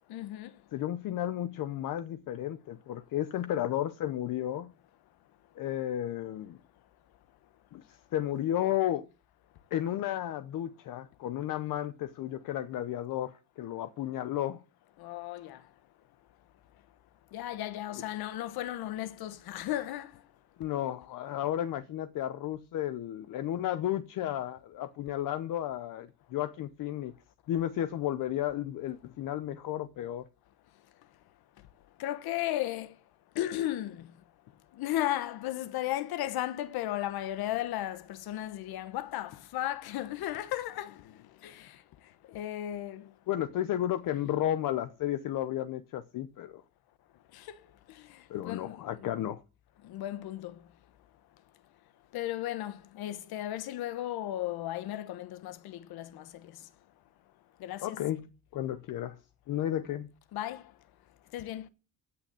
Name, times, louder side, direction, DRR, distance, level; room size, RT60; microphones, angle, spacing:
voice 1, 0.1-0.6 15.0-15.6 17.3-20.2 32.0-32.9 33.3-34.1 34.7-41.8 42.3-43.1 47.3-47.6 47.9-49.1 49.8-50.6 52.1-56.6 57.6-58.0 60.3-60.7 61.3-61.7, left 13 dB, 85° left, 1.2 m, -35 dB
voice 2, 0.7-4.7 5.6-6.6 7.7-9.1 9.7-14.6 20.6-27.1 27.5-30.2 43.3-46.6 48.3-49.4 57.8-59.2 59.5-60.1, left 12 dB, 60° left, 0.8 m, -33 dB
16.0 x 6.6 x 7.7 m
cardioid pair, 170°, 36 cm